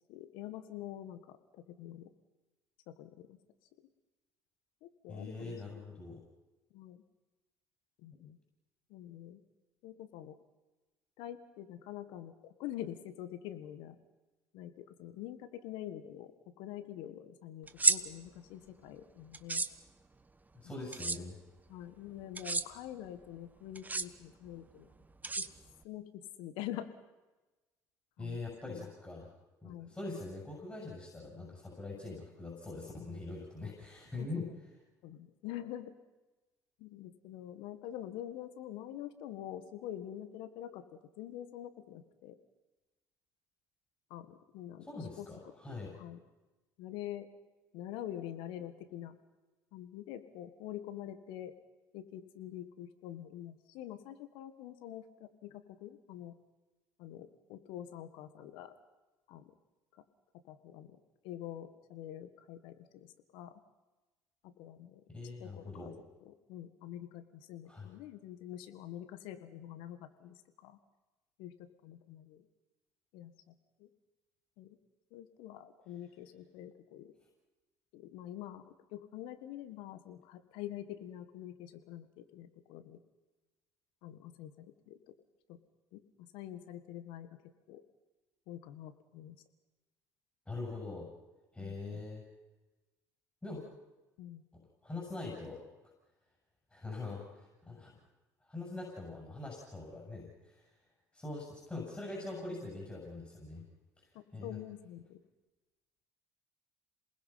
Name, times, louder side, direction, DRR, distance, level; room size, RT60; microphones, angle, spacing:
voice 1, 0.1-2.1 2.9-3.4 4.8-5.6 6.7-7.0 8.0-8.4 8.9-9.4 9.8-10.4 11.2-14.0 14.5-16.3 16.6-19.6 20.6-20.7 21.7-24.9 25.4-25.5 25.8-26.9 28.2-28.4 28.7-28.9 29.6-29.9 34.2-34.6 35.0-36.0 36.8-42.4 44.1-44.9 45.2-45.3 45.9-46.2 46.8-47.3 47.7-49.2 49.7-51.5 51.9-56.4 57.0-58.7 59.3-59.4 59.9-60.0 60.5-61.0 61.2-63.6 64.4-65.0 65.4-65.9 66.3-70.8 71.4-72.5 73.1-73.5 73.8-73.9 74.6-74.8 75.1-77.1 77.9-83.0 84.0-85.1 85.5-85.6 85.9-87.3 87.7-87.8 88.5-89.4 91.6-92.0 94.2-94.4 104.2-105.2, left 12 dB, 75° left, 10 dB, 1.6 m, -46 dB
voice 2, 5.1-6.2 20.5-21.4 28.2-29.3 29.6-34.5 44.8-46.0 65.1-65.9 67.7-67.9 90.5-91.1 91.5-92.2 93.4-93.6 94.5-95.6 96.7-97.9 98.4-100.6 101.1-103.6 104.0-104.6, left 3 dB, 15° left, -2 dB, 7.7 m, -43 dB
sound 1, 17.7-18.0 19.3-19.7 20.9-21.2 22.3-22.6 23.7-24.0 25.2-25.8, right 3 dB, 20° right, 1.2 m, -30 dB
28.0 x 20.0 x 5.8 m, 1.1 s
hypercardioid pair, 65°, 9 cm